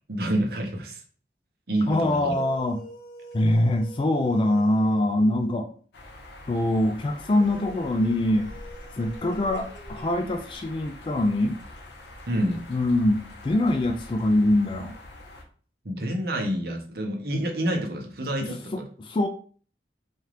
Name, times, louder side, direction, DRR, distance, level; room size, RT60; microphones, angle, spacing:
voice 1, 0.1-1.0 1.7-2.3 12.3-12.6 15.8-18.8, right 1 dB, 60° right, 2 dB, 0.8 m, -28 dB
voice 2, 1.9-2.8 3.3-5.7 6.5-8.5 9.0-11.6 12.7-15.0 18.4-19.3, left 1 dB, 30° left, 5 dB, 0.3 m, -24 dB
sound 1, 2.0-5.8 7.1-10.7, left 1 dB, 50° left, 0.8 m, -46 dB
sound 2, 5.9-15.4, left 1 dB, 75° left, 0.8 m, -44 dB
4.3 x 2.5 x 3.2 m, 0.43 s
head